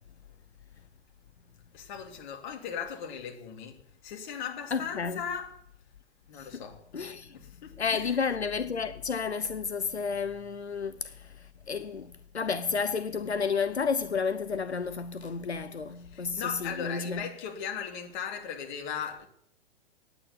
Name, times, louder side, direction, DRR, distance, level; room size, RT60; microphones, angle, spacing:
voice 1, 1.7-3.7 4.0-5.6 6.3-6.8 7.3-8.2 16.1-19.3, left 7 dB, 45° left, 2.8 m, -38 dB
voice 2, 4.7-5.3 6.3-6.6 6.9-7.3 7.8-17.3, left 5 dB, 90° left, 0.6 m, -31 dB
9.7 x 9.0 x 8.3 m
figure-of-eight pair, 105°, 32 cm